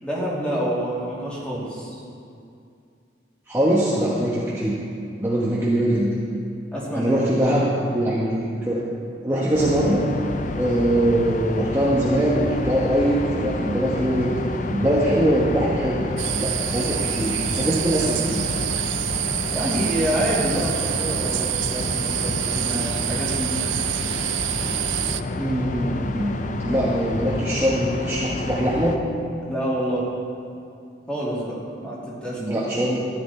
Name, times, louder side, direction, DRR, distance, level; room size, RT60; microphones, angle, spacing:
voice 1, 0.0-1.9 6.7-7.5 17.8-17.9 19.5-23.5 26.7-26.9 29.5-30.1 31.1-32.6, equal, 5° left, -7 dB, 2.5 m, -27 dB
voice 2, 3.5-4.8 5.2-6.2 6.9-8.8 9.2-10.0 10.6-14.4 14.7-16.1 16.3-18.5 25.4-26.3 26.6-29.0 32.4-33.1, right 1 dB, 15° right, -7 dB, 1.1 m, -22 dB
sound 1, 9.5-29.0, left 2 dB, 40° left, 0.5 m, -29 dB
sound 2, 16.2-25.2, right 15 dB, 90° right, 0.4 m, -27 dB
14.0 x 10.5 x 4.2 m, 2.5 s
head